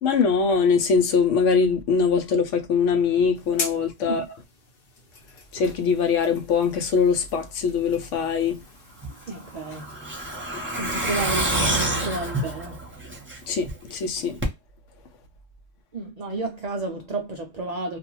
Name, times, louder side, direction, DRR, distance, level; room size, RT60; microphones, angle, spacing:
voice 1, 0.0-4.2 5.5-8.6 13.5-14.4, left 5 dB, 80° left, 1.0 m, -22 dB
sound 1, 3.3-12.3, left 3 dB, 50° left, 0.9 m, -41 dB
Truck, 9.0-13.7 14.0-14.1 14.4-14.5, right 1 dB, 10° right, 0.7 m, -27 dB
voice 2, 9.3-9.8 10.7-12.9 15.9-18.0, right 2 dB, 75° right, 0.3 m, -31 dB
2.4 x 2.4 x 2.9 m
omnidirectional pair, 1.3 m